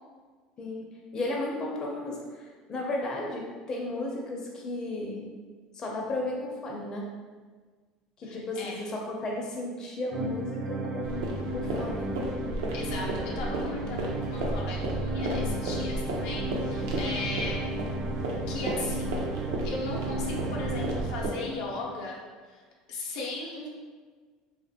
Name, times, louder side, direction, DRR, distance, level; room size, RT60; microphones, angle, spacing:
voice 1, 1.1-5.3 5.7-7.0 8.2-12.1, left 2 dB, 30° left, -2 dB, 0.5 m, -34 dB
voice 2, 8.2-8.8 12.7-17.7 18.5-19.2 19.6-22.2 22.5-22.6 22.9-23.7, left 2 dB, 80° left, -3 dB, 0.6 m, -37 dB
sound 1, 10.1-22.1, right 1 dB, 35° right, 0.3 m, -34 dB
sound 2, 11.0-21.3, right 2 dB, 85° right, 0.5 m, -33 dB
2.8 x 2.5 x 2.7 m, 1.5 s
supercardioid pair, 110°, 2 cm